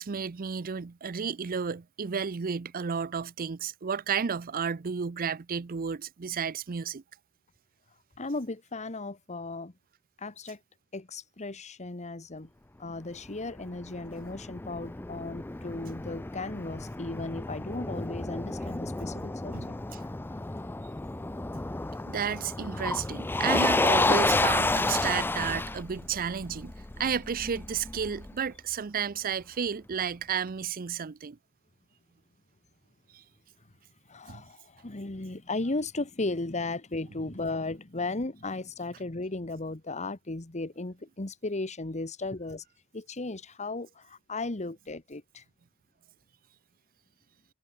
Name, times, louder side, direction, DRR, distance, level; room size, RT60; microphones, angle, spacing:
voice 1, 0.0-7.0 19.5-20.0 22.1-31.4 33.1-33.2 34.3-34.4, right 6 dB, 45° right, 0.5 m, -32 dB
voice 2, 8.2-9.7 10.2-10.6 10.9-12.5 12.8-19.8 20.0-20.1 34.1-42.6 42.9-45.4, left 2 dB, 35° left, 1.3 m, -36 dB
Motor vehicle (road), 13.2-28.3, left 2 dB, 10° left, 0.4 m, -31 dB
head